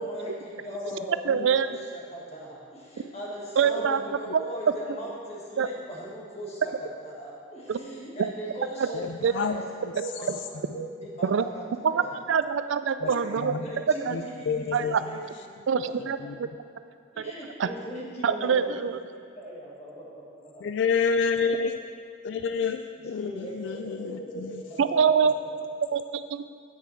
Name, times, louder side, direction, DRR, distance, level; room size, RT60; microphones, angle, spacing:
voice 1, 0.0-9.6 10.0-11.6 11.9-12.1 13.0-15.2 15.6-16.1 17.1-18.7 19.1-20.7 23.2-25.7, right 1 dB, 30° left, -4 dB, 1.8 m, -39 dB
voice 2, 1.3-1.7 3.6-4.0 4.3-4.4 5.6-5.7 7.7-7.8 8.8-8.9 9.2-9.3 11.2-11.4 11.8-12.0 12.3-13.6 13.9-14.2 14.7-15.0 15.7-16.2 17.2-17.3 17.6-17.7 18.2-19.0 24.8-25.3 25.9-26.4, right 6 dB, 65° right, 12 dB, 0.4 m, -24 dB
voice 3, 8.9-9.6 13.0-13.7 14.1-15.2 16.2-16.4 20.6-21.8 22.2-24.6, left 5 dB, 60° left, 7 dB, 0.3 m, -29 dB
9.2 x 9.1 x 4.5 m, 2.1 s
head